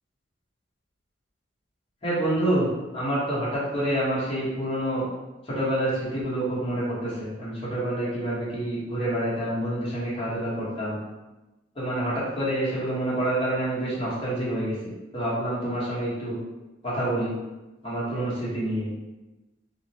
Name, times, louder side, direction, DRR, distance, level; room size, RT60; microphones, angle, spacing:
voice 1, 2.0-5.0 5.4-11.0 11.7-16.4 16.8-17.3 17.8-18.9, right 1 dB, 30° left, -8 dB, 1.0 m, -27 dB
3.0 x 2.3 x 2.7 m, 1.1 s
head